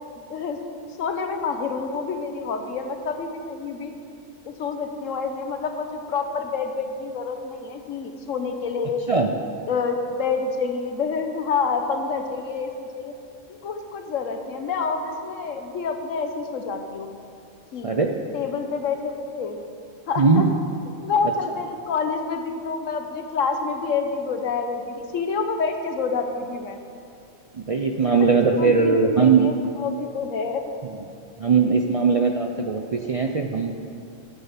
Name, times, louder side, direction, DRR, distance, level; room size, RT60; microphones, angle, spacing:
voice 1, 1.0-3.9 4.4-9.1 9.7-13.1 13.6-17.1 17.7-18.0 18.3-19.6 20.1-20.5 21.0-26.8 28.0-28.3 28.6-30.6, left 5 dB, 90° left, 6 dB, 1.3 m, -28 dB
voice 2, 20.2-20.5 27.5-29.5 31.4-33.7, right 5 dB, 50° right, 3 dB, 0.4 m, -20 dB
11.5 x 7.7 x 5.8 m, 2.5 s
omnidirectional pair, 1.3 m